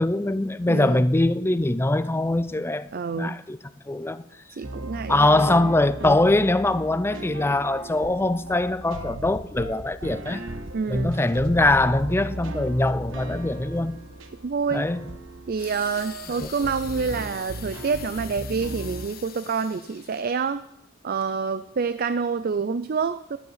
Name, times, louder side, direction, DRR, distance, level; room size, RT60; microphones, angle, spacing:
voice 1, 0.0-3.6 3.9-4.2 5.1-10.4 10.9-14.0 14.7-15.1 16.4-16.5, left 2 dB, 10° left, 0.5 m, -22 dB
voice 2, 0.7-1.0 2.9-3.4 4.5-5.7 6.0-6.2 10.7-11.1 14.4-14.9 15.5-20.6 21.0-23.4, right 5 dB, 45° right, 0.4 m, -27 dB
sound 1, 4.6-19.1, right 1 dB, 70° right, 1.3 m, -37 dB
sound 2, 15.6-20.5 21.2-21.3, left 9 dB, 50° left, 1.1 m, -44 dB
13.5 x 11.5 x 5.7 m
head